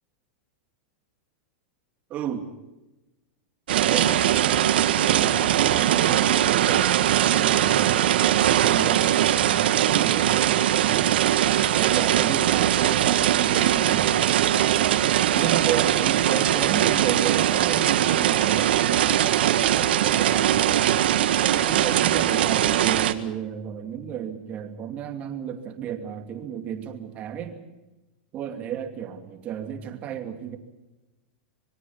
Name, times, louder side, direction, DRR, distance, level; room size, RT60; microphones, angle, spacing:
voice 1, 2.1-2.5 3.8-4.2 4.9-8.2 8.6-11.2 11.7-14.3 15.3-20.6 21.5-27.6 28.3-30.6, right 9 dB, 25° right, 6 dB, 2.6 m, -33 dB
sound 1, 3.7-23.1, right 11 dB, 75° right, 1.7 m, -21 dB
26.0 x 23.0 x 5.8 m, 1.0 s
supercardioid pair, 165°, 6 cm